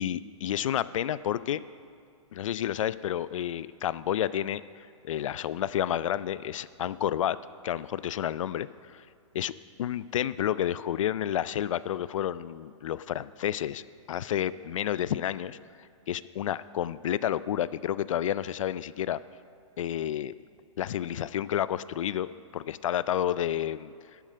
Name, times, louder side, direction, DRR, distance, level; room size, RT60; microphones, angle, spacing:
voice 1, 0.0-1.6 2.3-7.4 7.6-9.0 9.3-9.5 9.8-15.6 16.1-19.2 19.8-20.3 20.8-22.3 22.5-23.9, left 11 dB, 75° left, 17 dB, 0.4 m, -30 dB
12.0 x 7.4 x 5.5 m, 2.3 s
hypercardioid pair, 160°, 17 cm